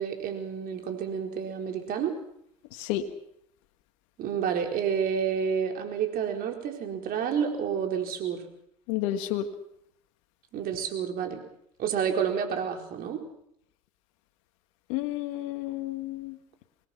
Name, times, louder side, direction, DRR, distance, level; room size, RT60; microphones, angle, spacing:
voice 1, 0.0-2.1 4.2-8.4 10.5-11.4 11.8-13.2, right 7 dB, 55° right, 4 dB, 4.5 m, -29 dB
voice 2, 8.9-9.5 14.9-16.4, left 13 dB, 80° left, 6 dB, 1.8 m, -31 dB
25.5 x 20.0 x 6.0 m, 0.71 s
supercardioid pair, 95°, 18 cm